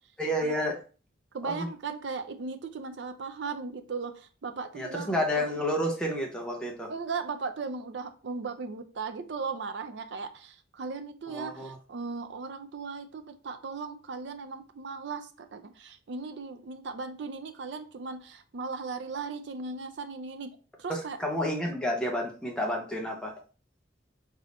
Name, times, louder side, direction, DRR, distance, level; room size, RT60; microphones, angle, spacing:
voice 1, 0.2-0.8 1.4-1.7 4.7-6.9 11.3-11.8 20.9-23.3, equal, 5° left, 0 dB, 0.6 m, -30 dB
voice 2, 1.3-5.5 6.9-21.2, right 4 dB, 65° right, 9 dB, 0.5 m, -37 dB
4.0 x 3.4 x 2.5 m, 0.37 s
head